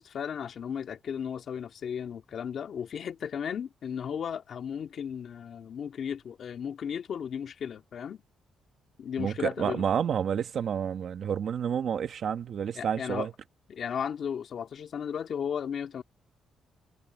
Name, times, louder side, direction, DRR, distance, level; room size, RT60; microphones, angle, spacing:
voice 1, 0.0-8.2 9.0-9.8 12.8-13.3 13.7-16.0, left 8 dB, 50° left, 2.1 m, -35 dB
voice 2, 9.2-13.3, right 8 dB, 50° right, 1.5 m, -29 dB
cardioid pair, 145°, 0 cm